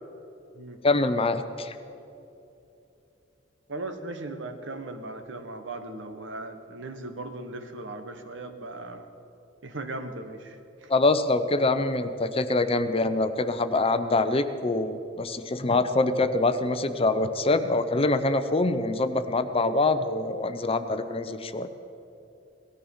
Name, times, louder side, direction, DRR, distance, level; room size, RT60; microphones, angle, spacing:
voice 1, 0.8-1.7 10.9-21.7, left 2 dB, 30° left, 10 dB, 0.7 m, -25 dB
voice 2, 3.7-9.1 9.6-10.6 10.8-10.9, right 2 dB, 75° right, 7 dB, 1.3 m, -38 dB
18.5 x 13.5 x 5.6 m, 2.8 s
head